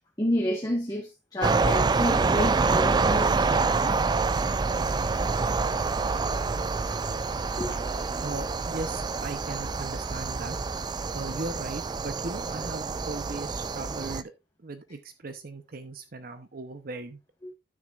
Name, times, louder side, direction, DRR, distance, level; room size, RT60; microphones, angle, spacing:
voice 1, 0.2-4.0 7.5-7.9 17.4-17.5, left 1 dB, 20° left, 1.5 m, -30 dB
sound 1, 1.4-14.2, right 4 dB, 25° right, 0.3 m, -27 dB
voice 2, 8.2-10.6 11.1-14.3 14.6-17.2, right 3 dB, 55° right, 0.7 m, -38 dB
12.0 x 6.6 x 2.4 m
head